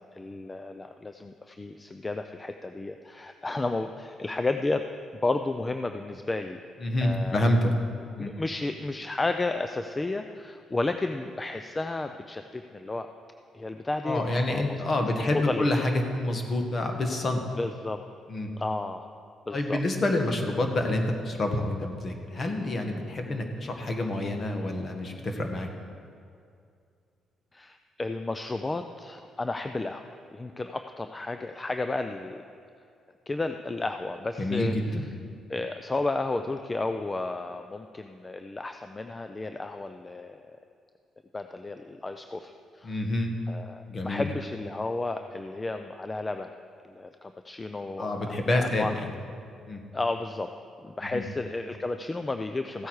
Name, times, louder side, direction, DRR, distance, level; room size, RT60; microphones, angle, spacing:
voice 1, 0.0-4.9 5.1-6.6 7.0-7.6 8.2-13.1 13.5-14.8 15.3-15.7 17.6-18.0 18.6-19.1 19.5-19.8 23.3-23.4 27.5-32.4 33.3-35.0 35.5-40.5 41.3-43.0 43.5-46.5 46.8-49.1 49.9-50.5 50.8-52.9, left 2 dB, 20° left, 7 dB, 0.5 m, -32 dB
voice 2, 6.8-7.7 8.1-8.3 14.0-17.4 18.3-18.5 19.5-25.7 34.4-35.1 42.8-43.3 43.9-44.3 48.0-49.1 49.7-49.8 51.1-51.2, left 1 dB, 40° left, 4 dB, 1.5 m, -27 dB
15.0 x 8.2 x 4.8 m, 2.4 s
cardioid pair, 90°, 0 cm